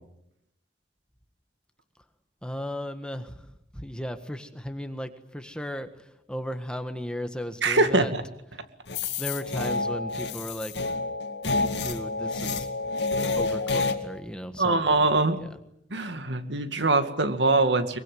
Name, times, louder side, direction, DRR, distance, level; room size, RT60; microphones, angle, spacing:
voice 1, 2.4-3.4 3.7-8.1 9.2-10.8 11.8-12.7 13.3-14.9 15.4-15.6, equal, 5° left, 8 dB, 1.6 m, -35 dB
voice 2, 7.6-8.2 14.6-15.4 15.9-18.0, right 3 dB, 75° right, 9 dB, 2.3 m, -23 dB
sound 1, 8.9-13.9, left 3 dB, 70° left, 2.3 m, -29 dB
23.5 x 23.0 x 9.3 m, 0.81 s
head